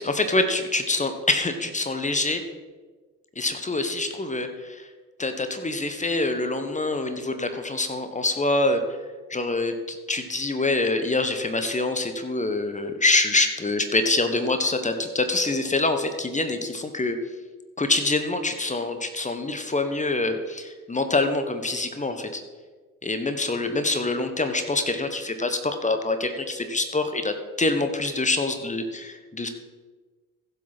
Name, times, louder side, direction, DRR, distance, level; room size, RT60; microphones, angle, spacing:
voice 1, 0.0-2.4 3.4-4.9 5.2-8.8 9.3-17.2 17.8-22.4 23.0-29.5, left 2 dB, 15° left, 7 dB, 1.3 m, -25 dB
15.0 x 7.6 x 4.2 m, 1.3 s
figure-of-eight pair, 50°, 42 cm